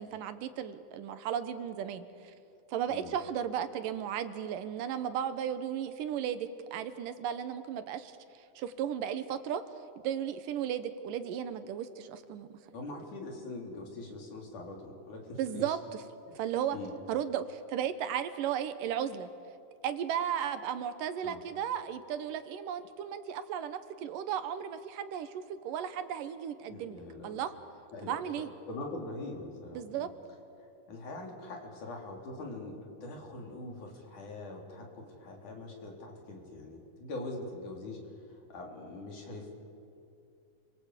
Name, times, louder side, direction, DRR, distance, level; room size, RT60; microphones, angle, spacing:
voice 1, 0.0-2.3 2.7-9.6 10.0-12.6 15.4-15.8 16.3-16.8 17.1-19.3 19.8-27.5 28.0-28.5 29.7-30.1, right 9 dB, 85° right, 11 dB, 2.8 m, -35 dB
voice 2, 12.7-15.8 16.7-17.0 21.2-21.4 26.7-27.4 27.9-30.1 30.6-39.5, left 2 dB, 65° left, 1 dB, 5.2 m, -43 dB
29.5 x 24.0 x 8.3 m, 2.6 s
omnidirectional pair, 3.7 m